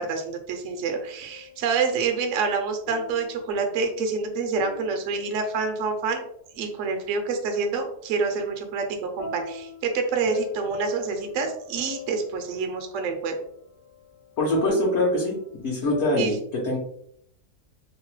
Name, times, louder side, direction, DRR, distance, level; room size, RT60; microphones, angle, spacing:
voice 1, 0.0-6.2 6.6-13.4 16.1-16.4, right 4 dB, 70° right, 5 dB, 0.8 m, -27 dB
sound 1, 0.5-1.8 2.9-6.1 9.2-16.2, left 4 dB, 75° left, 1.2 m, -41 dB
voice 2, 14.4-15.3 15.6-16.8, left 1 dB, 60° left, -4 dB, 0.9 m, -23 dB
2.9 x 2.0 x 3.0 m, 0.70 s
omnidirectional pair, 1.6 m